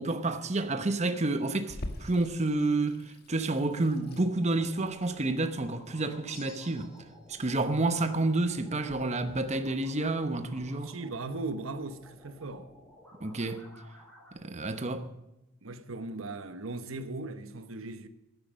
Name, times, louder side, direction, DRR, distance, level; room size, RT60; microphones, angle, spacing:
voice 1, 0.0-6.9 7.3-10.9 13.2-13.7 14.3-15.1, right 2 dB, 35° right, 0.9 m, -29 dB
Water tap faucet / Sink (filling or washing), 1.7-10.7, left 1 dB, 55° left, 1.5 m, -47 dB
sound 1, 3.5-14.3, equal, 5° left, 5.8 m, -55 dB
sound 2, 6.3-7.3, left 7 dB, 70° left, 1.8 m, -53 dB
voice 2, 10.8-12.7 15.6-18.1, right 2 dB, 90° right, 1.0 m, -38 dB
14.5 x 11.0 x 6.3 m
head